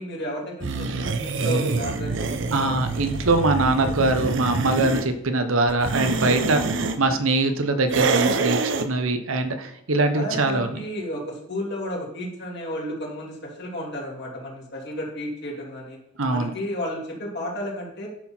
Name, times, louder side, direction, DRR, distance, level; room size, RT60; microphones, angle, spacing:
voice 1, 0.0-3.2 10.1-16.0 16.3-18.1, equal, 55° left, -2 dB, 2.9 m, -33 dB
sound 1, 0.6-5.1 5.7-7.0 7.9-8.9, right 3 dB, 65° right, 0.7 m, -26 dB
voice 2, 2.5-10.8 16.2-16.5, right 2 dB, 85° right, 8 dB, 1.0 m, -23 dB
10.0 x 6.0 x 4.4 m, 0.75 s
head